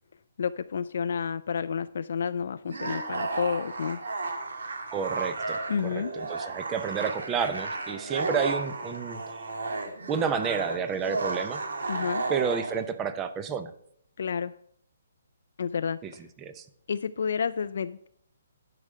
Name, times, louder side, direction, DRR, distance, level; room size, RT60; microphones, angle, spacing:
voice 1, 0.4-4.0 5.7-6.1 11.9-12.2 14.2-14.5 15.6-16.3 16.9-18.1, left 6 dB, 55° left, 11 dB, 0.3 m, -30 dB
sound 1, 2.6-12.8, right 3 dB, 80° right, 1.8 m, -33 dB
voice 2, 4.9-9.2 10.1-11.6 12.3-13.7 16.0-16.1 16.4-16.7, right 6 dB, 10° right, 10 dB, 0.5 m, -30 dB
10.5 x 5.0 x 6.5 m, 0.69 s
hypercardioid pair, 175°, 0 cm